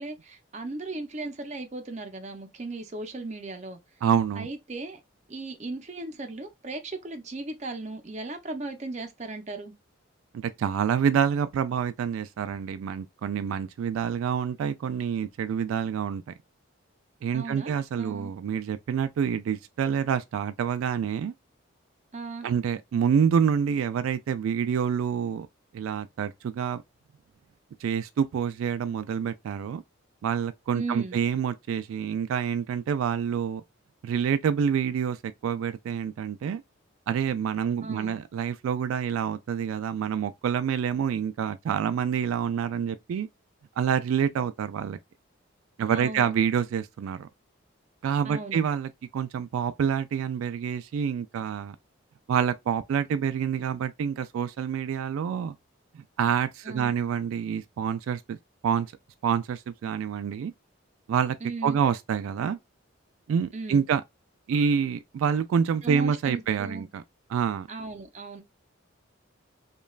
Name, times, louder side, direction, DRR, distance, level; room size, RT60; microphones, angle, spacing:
voice 1, 0.0-3.8 4.3-5.0 5.3-9.7 17.3-17.7 18.0-18.3 22.1-22.5 30.7-31.2 37.8-38.2 45.9-46.3 48.2-48.6 56.6-56.9 61.4-61.8 63.5-63.8 65.8-66.9 67.7-68.4, right 3 dB, 35° right, 0.5 m, -36 dB
voice 2, 4.0-4.5 10.3-16.2 17.2-21.3 22.4-25.5 25.7-26.8 27.8-29.8 30.2-33.6 34.0-35.2 35.4-36.6 37.1-43.3 43.8-45.0 45.8-47.3 48.0-51.8 52.3-55.5 56.2-58.4 58.6-58.9 59.2-60.5 61.1-61.4 61.6-62.6 63.3-64.0 64.5-67.0 67.3-67.7, right 7 dB, 85° right, 0.3 m, -27 dB
3.1 x 2.3 x 2.3 m
head